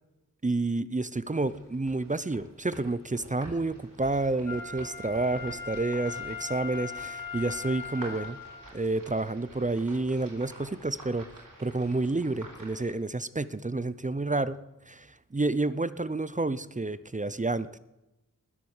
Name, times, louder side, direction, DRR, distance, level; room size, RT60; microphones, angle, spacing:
voice 1, 0.4-8.4 8.7-11.3 11.6-17.8, right 2 dB, 25° right, 15 dB, 0.6 m, -30 dB
sound 1, 1.3-12.9, right 2 dB, 80° right, 4.7 m, -49 dB
Wind instrument woodwind instrument, 4.4-8.7 9.2-9.3, left 6 dB, 80° left, 4.4 m, -39 dB
20.0 x 7.8 x 7.2 m, 0.95 s
wide cardioid pair, 75°, 33 cm